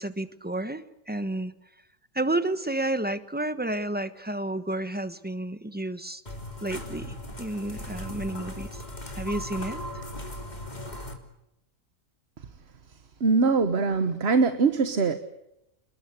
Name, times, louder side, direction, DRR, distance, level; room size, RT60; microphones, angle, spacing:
voice 1, 0.0-1.5 2.1-6.2 6.6-8.8 9.1-9.8 14.1-14.2, right 1 dB, 5° right, 1.2 m, -31 dB
sound 1, 6.3-11.2, left 1 dB, 30° left, 3.5 m, -38 dB
voice 2, 13.2-15.2, right 4 dB, 45° right, 1.4 m, -22 dB
29.5 x 21.0 x 8.2 m
omnidirectional pair, 1.5 m